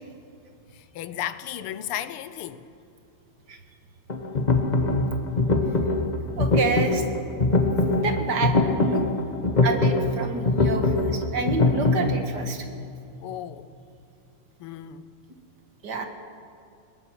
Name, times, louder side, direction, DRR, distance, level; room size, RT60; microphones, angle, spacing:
voice 1, 0.7-2.7 13.2-13.7 14.6-15.1 15.9-16.0, left 11 dB, 80° left, 1.7 m, -35 dB
sound 1, 4.1-12.2, left 2 dB, 35° left, 0.7 m, -23 dB
voice 2, 6.4-7.0 8.0-9.0 9.6-12.7 15.8-16.1, right 4 dB, 50° right, 2.1 m, -28 dB
21.0 x 21.0 x 6.2 m
omnidirectional pair, 2.4 m